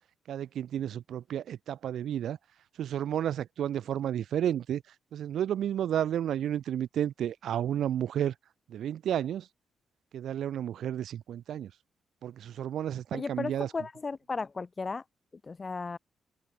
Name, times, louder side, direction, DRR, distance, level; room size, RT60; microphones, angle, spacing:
voice 1, 0.3-2.4 2.8-4.8 5.1-8.3 8.7-9.5 10.1-11.7 12.2-13.7, right 10 dB, 75° right, 1.1 m, -31 dB
voice 2, 13.1-15.0 15.4-16.0, left 4 dB, 35° left, 0.6 m, -35 dB
open air
cardioid pair, 90°, 0 cm